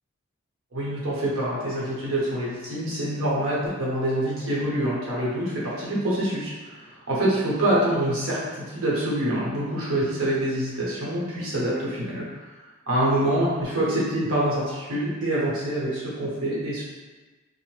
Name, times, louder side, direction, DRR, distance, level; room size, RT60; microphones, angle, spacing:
voice 1, 0.7-12.4 12.9-16.8, right 1 dB, 90° right, -7 dB, 1.0 m, -26 dB
2.7 x 2.1 x 3.1 m, 1.2 s
head